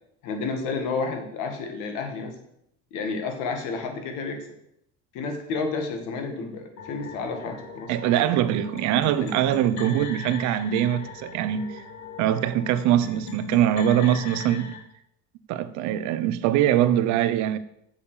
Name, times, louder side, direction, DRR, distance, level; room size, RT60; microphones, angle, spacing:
voice 1, 0.2-2.4 2.9-4.5 5.1-7.9 9.2-9.3, left 4 dB, 75° left, 2.0 m, -31 dB
sound 1, 6.8-14.8, left 4 dB, 60° left, 1.7 m, -39 dB
voice 2, 7.9-11.8 12.2-14.7 15.5-17.6, right 11 dB, 65° right, 0.7 m, -23 dB
7.1 x 7.1 x 6.7 m
cardioid pair, 175°, 31 cm